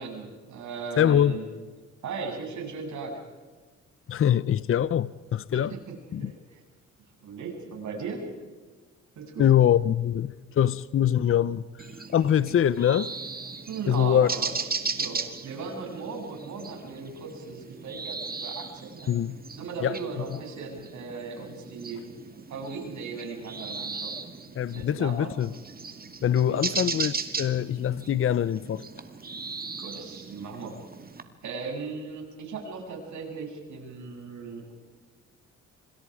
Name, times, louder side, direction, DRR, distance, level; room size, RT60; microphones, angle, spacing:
voice 1, 0.0-1.4 2.0-3.2 5.5-5.8 6.2-6.6 7.2-8.3 9.2-9.4 13.7-14.5 15.0-19.1 19.5-22.0 22.5-24.2 24.7-25.3 26.5-26.6 29.8-30.8 31.4-34.7, right 4 dB, 70° right, 7.9 m, -37 dB
voice 2, 1.0-1.4 4.1-5.7 6.1-6.3 9.4-13.1 13.9-14.3 19.1-19.4 19.8-20.0 24.6-25.5 26.2-28.8, left 10 dB, 45° left, 0.8 m, -24 dB
sound 1, 11.8-31.2, right 4 dB, 30° right, 2.3 m, -37 dB
27.0 x 26.0 x 5.0 m
cardioid pair, 90°, 30 cm